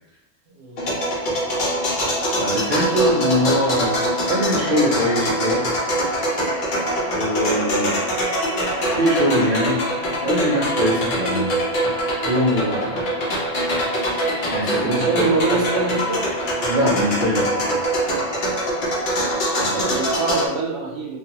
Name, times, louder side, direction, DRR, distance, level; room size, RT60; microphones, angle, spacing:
voice 1, 0.5-0.9 14.6-16.2 19.6-21.2, right 4 dB, 75° right, -3 dB, 1.1 m, -25 dB
sound 1, 0.8-20.5, equal, 50° left, 0.7 m, -23 dB
voice 2, 2.4-3.9 4.3-5.6 7.1-8.0 8.8-9.8 10.2-11.6 12.2-13.0 14.5-15.2 16.7-17.8 19.5-19.9, equal, 60° right, -5 dB, 0.5 m, -22 dB
2.6 x 2.3 x 2.8 m, 0.95 s
omnidirectional pair, 1.3 m